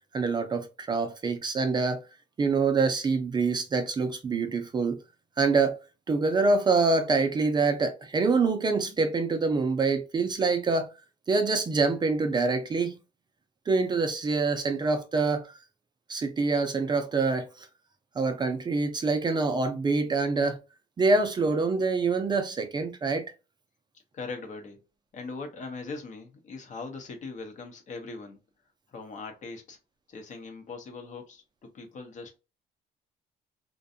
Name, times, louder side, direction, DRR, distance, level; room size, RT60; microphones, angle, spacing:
voice 1, 0.1-2.0 2.4-5.0 5.4-5.8 6.1-10.9 11.3-12.9 13.7-15.5 16.1-17.7 18.2-20.6 21.0-23.3, right 4 dB, 25° right, 0.4 m, -25 dB
voice 2, 24.1-24.8 25.1-28.4 28.9-29.8 30.1-32.4, left 4 dB, 45° left, 0.8 m, -40 dB
2.5 x 2.2 x 2.6 m
cardioid pair, 110°, 17 cm